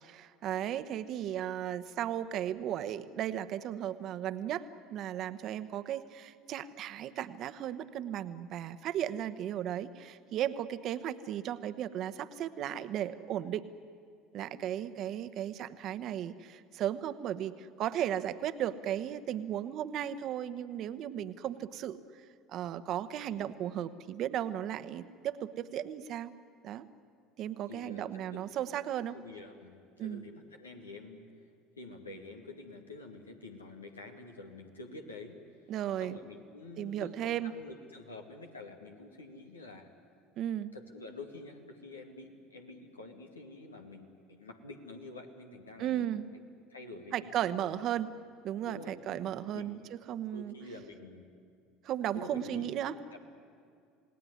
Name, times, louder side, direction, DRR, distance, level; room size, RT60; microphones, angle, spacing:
voice 1, 0.0-13.7 14.3-22.2 22.5-26.3 26.6-26.8 27.4-29.2 30.0-30.2 35.7-36.2 36.8-37.6 40.4-40.7 45.8-46.3 47.1-48.1 48.4-50.5 51.8-52.9, right 11 dB, 50° right, 12 dB, 1.1 m, -35 dB
voice 2, 27.7-28.4 29.1-31.3 31.8-35.4 36.0-39.9 40.7-46.2 46.7-47.9 48.6-49.2 49.5-49.9 50.3-51.3 52.1-52.7 53.1-53.2, left 2 dB, 90° left, 3 dB, 2.2 m, -48 dB
28.5 x 18.5 x 9.8 m, 2.3 s
hypercardioid pair, 70°, 0 cm